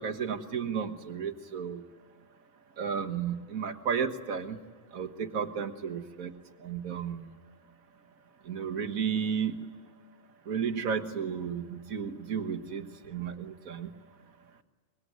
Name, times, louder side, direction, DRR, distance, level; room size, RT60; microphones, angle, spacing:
voice 1, 0.0-1.8 2.8-4.6 4.9-6.3 6.6-7.2 8.5-9.7 10.5-13.9, right 7 dB, 80° right, 6 dB, 1.8 m, -33 dB
24.0 x 21.5 x 9.5 m, 1.5 s
omnidirectional pair, 1.4 m